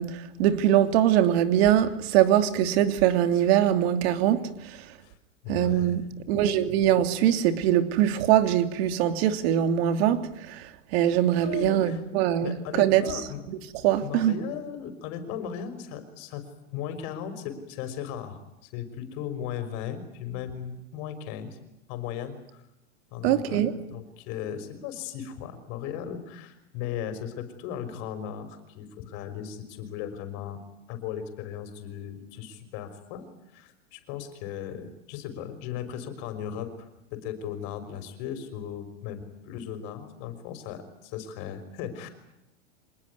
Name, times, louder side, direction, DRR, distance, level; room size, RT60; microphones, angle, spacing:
voice 1, 0.0-4.8 5.5-6.0 6.3-13.0 13.8-14.4 23.2-23.8, right 11 dB, 55° right, 3.0 m, -23 dB
voice 2, 5.4-6.0 11.3-12.0 12.4-13.4 14.0-16.4 16.7-21.6 21.9-22.6 23.1-23.7 23.9-30.6 30.9-33.3 33.5-42.1, left 9 dB, 45° left, 5.7 m, -37 dB
26.0 x 20.5 x 9.9 m
supercardioid pair, 145°, 37 cm